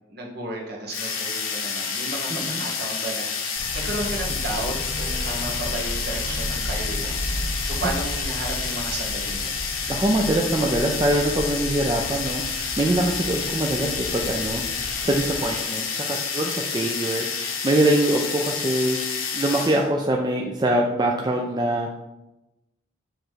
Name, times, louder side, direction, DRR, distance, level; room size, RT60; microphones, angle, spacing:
voice 1, 0.1-7.2 7.6-9.6, right 2 dB, 50° right, -1 dB, 1.2 m, -33 dB
sound 1, 0.9-19.9, left 5 dB, 90° left, 0.9 m, -29 dB
voice 2, 2.3-2.6 7.7-7.8 9.9-21.9, right 1 dB, 20° right, 0 dB, 0.4 m, -24 dB
sound 2, 3.5-15.5, equal, 35° left, 2.2 m, -34 dB
6.7 x 3.1 x 4.6 m, 0.97 s
head